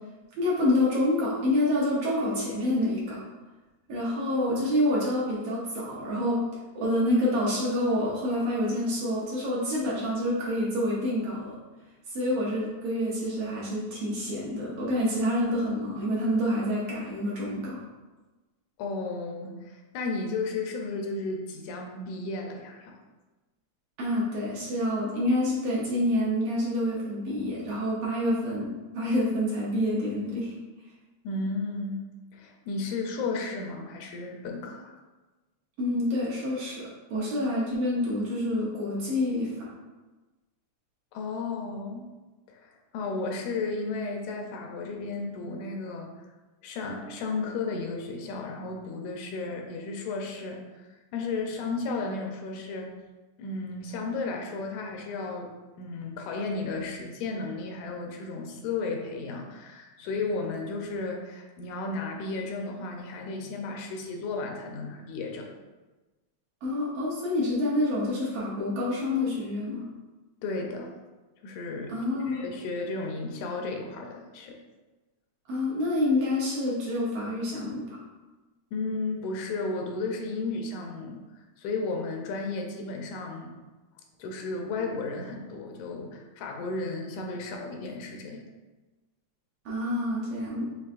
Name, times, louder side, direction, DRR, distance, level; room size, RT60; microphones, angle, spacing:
voice 1, 0.4-3.2 3.9-6.4 6.8-11.6 12.1-17.8 24.0-30.5 35.8-39.7 66.6-69.8 71.9-72.5 75.5-78.0 89.7-90.6, left 1 dB, 65° right, -6 dB, 1.7 m, -27 dB
voice 2, 18.8-23.0 31.2-32.0 32.3-35.0 37.1-37.3 41.1-42.1 42.5-46.1 46.6-52.9 53.4-55.5 55.8-65.5 70.4-71.0 71.4-72.0 72.3-74.6 78.7-83.5 84.2-88.4, left 3 dB, 80° left, 2 dB, 2.0 m, -34 dB
6.7 x 3.1 x 2.4 m, 1.2 s
omnidirectional pair, 3.4 m